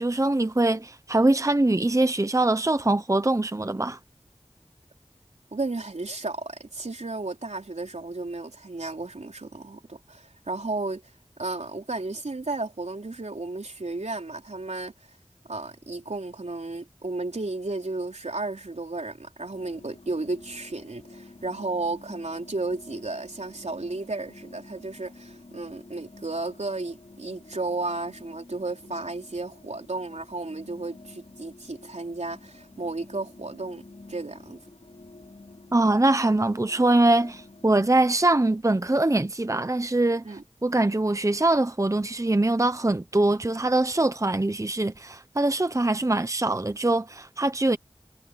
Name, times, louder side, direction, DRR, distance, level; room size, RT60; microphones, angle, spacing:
voice 1, 0.0-4.0 35.7-40.2 40.6-47.8, right 2 dB, 25° right, 0.8 m, -23 dB
voice 2, 5.5-11.0 11.4-14.9 15.5-33.8 34.1-34.6 40.2-40.4, right 2 dB, 80° right, 3.9 m, -33 dB
sound 1, 19.5-37.8, left 2 dB, 70° left, 5.5 m, -49 dB
wide cardioid pair, 45°, 12 cm